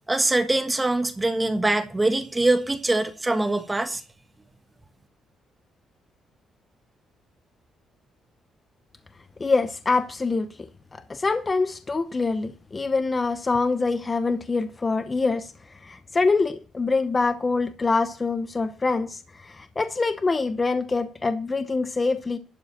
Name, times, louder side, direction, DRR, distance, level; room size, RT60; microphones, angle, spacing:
voice 1, 0.1-4.0, right 2 dB, 15° right, 1.4 m, -23 dB
voice 2, 9.4-10.5 10.9-15.5 15.8-22.4, left 3 dB, 25° left, 0.8 m, -25 dB
12.0 x 4.7 x 7.4 m
cardioid pair, 90°, 0 cm